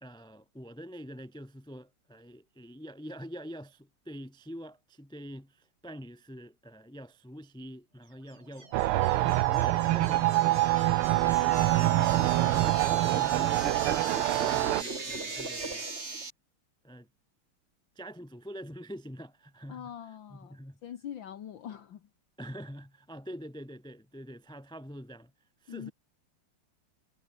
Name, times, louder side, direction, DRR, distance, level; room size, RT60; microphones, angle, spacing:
voice 1, 0.0-8.7 9.0-13.7 14.4-15.9 16.8-17.1 17.9-19.9 20.3-20.8 22.4-25.3 25.6-25.9, equal, 5° left, 0.7 m, -45 dB
sound 1, 8.3-16.3, right 3 dB, 30° right, 3.1 m, -39 dB
sound 2, 8.7-14.8, right 16 dB, 90° right, 1.6 m, -25 dB
voice 2, 19.7-22.1 25.7-25.9, left 9 dB, 60° left, 1.9 m, -43 dB
omnidirectional pair, 2.4 m